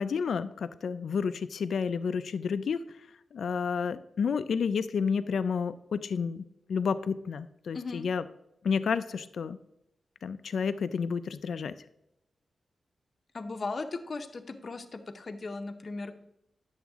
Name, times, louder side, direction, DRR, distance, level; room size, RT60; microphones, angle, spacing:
voice 1, 0.0-2.8 3.3-6.4 6.7-8.3 8.6-9.6 10.2-11.7, left 6 dB, 70° left, 12 dB, 0.3 m, -30 dB
voice 2, 7.7-8.1 13.3-16.1, left 3 dB, 40° left, 7 dB, 0.7 m, -37 dB
10.5 x 7.1 x 3.5 m, 0.82 s
wide cardioid pair, 155°, 0 cm